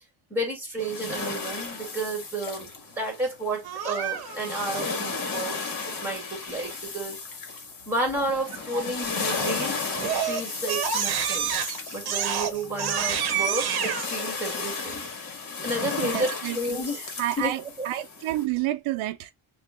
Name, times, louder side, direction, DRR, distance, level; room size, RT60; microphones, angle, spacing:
voice 1, 0.3-5.6 6.0-7.2 7.9-11.5 11.9-17.0 17.4-17.5, right 1 dB, 5° right, 2.3 m, -31 dB
sound 1, 0.8-18.4, left 4 dB, 40° left, 1.5 m, -34 dB
Crying sobbing, 3.6-4.6 9.3-9.6 10.0-14.1, right 8 dB, 50° right, 1.0 m, -28 dB
voice 2, 15.7-19.3, right 15 dB, 70° right, 0.6 m, -30 dB
6.5 x 2.5 x 2.4 m
cardioid pair, 165°, 50 cm